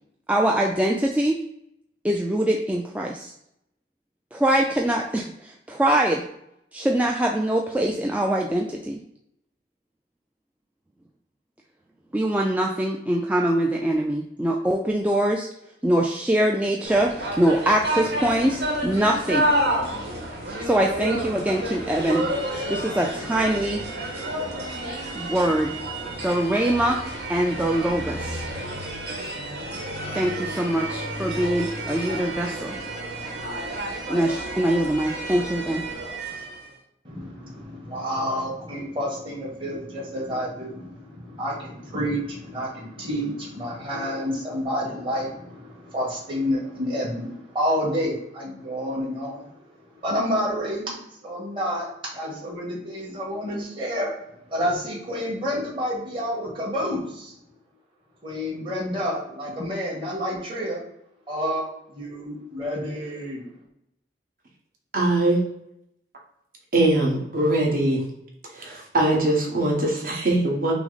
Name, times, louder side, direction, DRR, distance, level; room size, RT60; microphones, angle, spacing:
voice 1, 0.3-1.4 2.0-3.3 4.3-6.2 6.7-9.0 12.1-15.5 15.8-19.5 20.5-22.3 22.7-23.8 25.2-25.7 26.2-27.0 27.3-28.4 30.1-32.8 34.1-35.8, right 1 dB, 10° right, 0 dB, 0.3 m, -23 dB
sound 1, 16.8-36.7, right 1 dB, 75° right, 1.3 m, -30 dB
voice 2, 37.0-49.5 50.0-51.0 51.2-51.9 52.1-54.1 54.5-57.3 58.2-60.8 61.3-63.5, equal, 30° right, -4 dB, 1.6 m, -29 dB
voice 3, 64.9-65.4 66.7-68.0 68.5-70.7, right 1 dB, 50° right, -2 dB, 1.2 m, -22 dB
5.9 x 2.0 x 4.0 m, 0.77 s
head